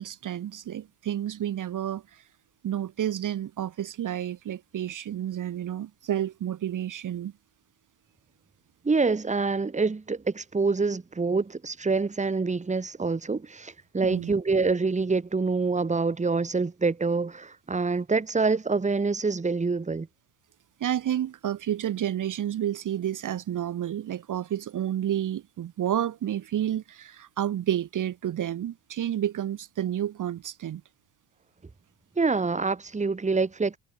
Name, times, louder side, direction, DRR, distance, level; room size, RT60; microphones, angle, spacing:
voice 1, 0.0-2.2 2.6-7.3 14.0-14.3 20.8-30.8, right 11 dB, 40° right, 2.3 m, -30 dB
voice 2, 8.8-20.1 32.2-33.8, right 4 dB, 15° right, 2.8 m, -26 dB
supercardioid pair, 95°, 45 cm